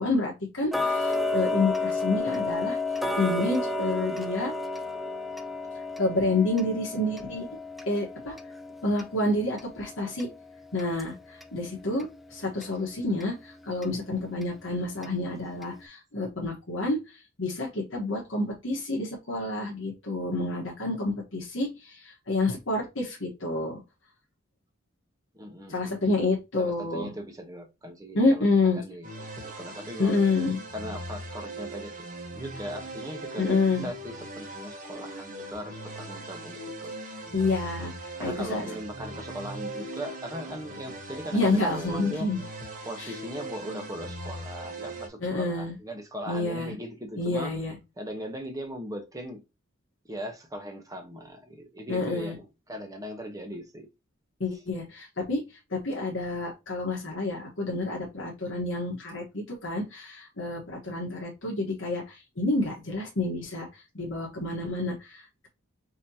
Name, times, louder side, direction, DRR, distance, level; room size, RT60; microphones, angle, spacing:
voice 1, 0.0-2.8 3.2-4.5 6.0-7.5 7.9-8.3 8.8-10.3 10.7-23.8 25.7-27.1 28.1-28.8 30.0-30.6 33.4-33.9 37.3-38.7 41.3-42.4 43.0-43.1 45.2-45.7 46.3-46.7 47.2-47.8 51.9-52.4 54.4-65.5, left 2 dB, 70° left, 1.4 m, -29 dB
Tick-tock, 0.7-11.6 12.0-12.1 12.6-12.7 13.2-13.3 13.8-13.9 14.4-14.5 15.0-15.1 15.6-15.7, left 2 dB, ahead, 0.4 m, -32 dB
voice 2, 25.3-26.0 26.6-30.2 30.7-32.1 32.3-36.9 37.4-37.6 38.2-42.3 42.8-47.5 48.0-49.4 50.1-53.9, equal, 15° right, 1.0 m, -39 dB
sound 1, 29.0-45.1, right 1 dB, 40° right, 1.1 m, -40 dB
5.4 x 2.9 x 2.9 m
head